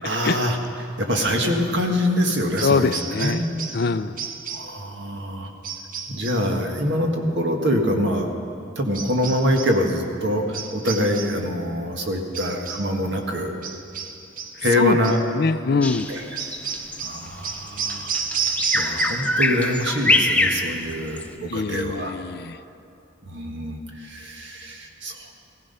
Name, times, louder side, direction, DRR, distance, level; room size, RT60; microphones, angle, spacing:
voice 1, 0.0-3.4 4.5-5.5 6.1-13.5 14.6-15.2 16.1-16.2 17.0-18.1 18.7-22.2 23.2-25.3, equal, 65° right, 2 dB, 1.7 m, -25 dB
voice 2, 2.6-3.4 3.7-4.2 14.8-15.0 15.3-16.1 21.5-22.6, left 4 dB, 50° left, 13 dB, 0.4 m, -23 dB
sound 1, 2.6-3.9 4.2-4.8 5.6-6.5 8.9-9.8 10.5-11.5 12.3-13.0 13.6-14.6 15.0-15.3 16.4-19.4 19.7-20.2, right 6 dB, 45° right, 0.9 m, -31 dB
Bird vocalization bird call bird song, 15.8-21.3, left 2 dB, 5° left, 0.6 m, -24 dB
16.0 x 15.5 x 5.6 m, 2.5 s
head